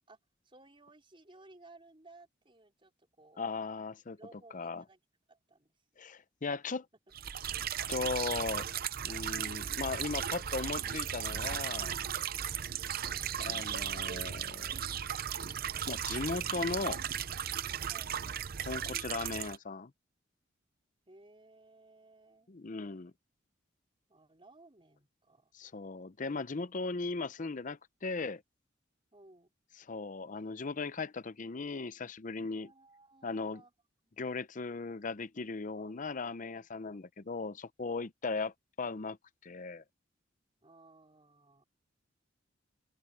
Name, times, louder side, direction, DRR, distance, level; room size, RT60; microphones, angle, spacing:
voice 1, 0.4-3.4 4.2-5.0 5.3-6.0 13.0-13.3 17.9-18.2 21.1-22.5 24.1-25.8 29.1-29.5 32.5-33.7 35.8-37.0 40.6-41.6, right 2 dB, 30° right, 4.5 m, -59 dB
voice 2, 3.4-4.2 4.5-4.8 6.0-6.9 7.9-8.7 9.0-12.0 13.4-14.9 15.9-17.0 18.6-19.9 22.5-23.1 25.5-28.4 29.8-32.7 33.2-33.6 34.2-39.2 39.4-39.8, left 4 dB, 45° left, 0.6 m, -37 dB
sound 1, 7.1-19.6, right 9 dB, 50° right, 0.6 m, -36 dB
open air
head